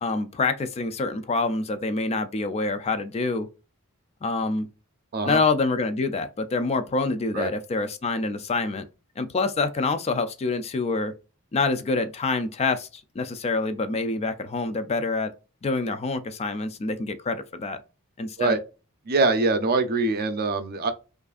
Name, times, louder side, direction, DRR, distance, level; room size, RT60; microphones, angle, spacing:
voice 1, 0.0-3.5 4.2-4.7 5.2-8.8 9.2-11.1 11.5-12.9 13.2-15.3 15.6-17.8 18.2-18.6, left 3 dB, 30° left, 0.3 m, -26 dB
voice 2, 19.1-20.9, right 3 dB, 45° right, 0.5 m, -23 dB
4.7 x 2.5 x 2.4 m
head